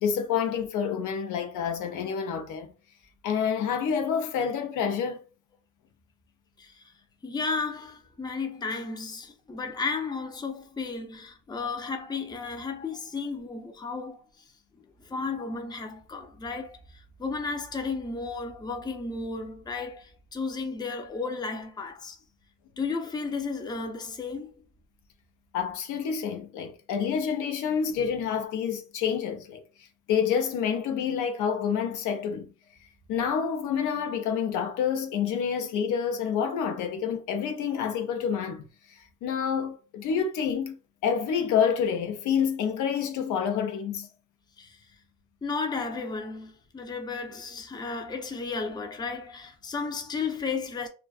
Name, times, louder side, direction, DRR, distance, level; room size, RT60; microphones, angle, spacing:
voice 1, 0.0-2.7 3.2-5.2 25.5-29.6 30.1-32.5 33.1-38.6 39.2-40.8 41.0-44.1, left 7 dB, 85° left, 0.5 m, -28 dB
voice 2, 7.2-14.2 15.1-22.2 22.8-24.5 44.6-44.8 45.4-50.9, left 4 dB, 15° left, 0.4 m, -33 dB
2.5 x 2.2 x 2.3 m
cardioid pair, 90°, 30 cm